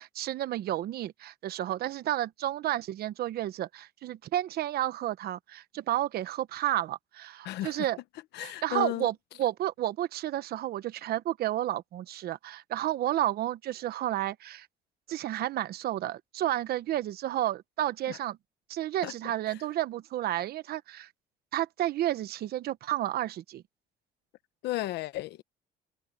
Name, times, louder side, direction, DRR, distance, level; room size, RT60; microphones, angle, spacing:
voice 1, 0.0-8.0 8.4-14.7 15.1-18.4 18.7-21.1 21.5-23.6, right 13 dB, 65° right, 1.1 m, -31 dB
voice 2, 7.4-7.9 8.3-9.1 18.1-18.2 19.0-19.1 19.5-19.6 24.6-25.4, left 16 dB, 80° left, 1.2 m, -34 dB
cardioid pair, 110°, 17 cm